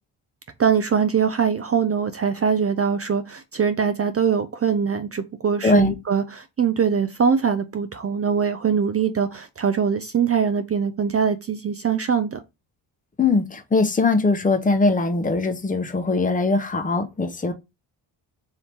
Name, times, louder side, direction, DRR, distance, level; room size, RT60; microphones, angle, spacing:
voice 1, 0.6-12.4, right 6 dB, 35° right, 0.4 m, -22 dB
voice 2, 5.6-5.9 13.2-17.5, left 3 dB, 15° left, 0.7 m, -21 dB
3.5 x 2.8 x 4.3 m
cardioid pair, 75°, 48 cm